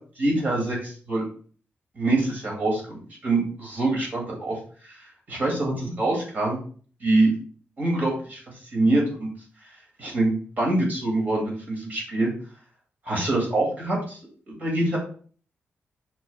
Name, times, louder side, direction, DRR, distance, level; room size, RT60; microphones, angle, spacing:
voice 1, 0.2-1.2 1.9-4.6 4.8-6.6 7.0-7.3 7.8-8.4 8.7-9.3 10.0-12.3 13.1-14.2 14.5-15.0, right 2 dB, 40° right, -1 dB, 2.6 m, -25 dB
6.8 x 5.9 x 2.4 m, 0.44 s
wide cardioid pair, 170°, 4 cm